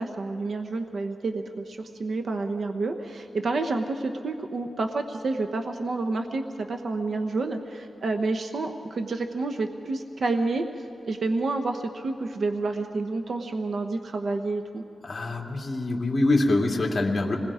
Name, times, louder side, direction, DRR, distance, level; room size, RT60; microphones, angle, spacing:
voice 1, 0.0-10.6 11.1-14.8, right 3 dB, 65° right, 5 dB, 1.0 m, -29 dB
voice 2, 15.0-17.4, left 2 dB, 35° left, -1 dB, 2.7 m, -24 dB
26.5 x 21.0 x 5.0 m, 2.9 s
wide cardioid pair, 100°, 0 cm